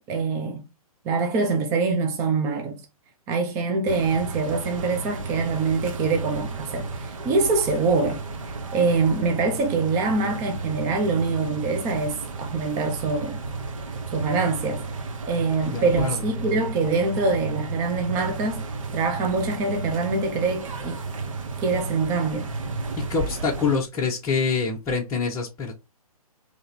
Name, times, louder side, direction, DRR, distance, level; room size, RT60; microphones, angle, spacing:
voice 1, 0.1-0.6 1.0-2.8 3.3-8.2 8.7-13.4 14.1-14.8 15.3-18.6 18.9-21.0 21.6-22.5, right 4 dB, 15° right, 0.5 m, -24 dB
sound 1, 3.9-23.8, right 3 dB, 60° right, 0.9 m, -33 dB
voice 2, 15.7-16.2 23.1-25.7, left 5 dB, 15° left, 0.8 m, -25 dB
3.8 x 3.0 x 4.2 m
figure-of-eight pair, 130°, 19 cm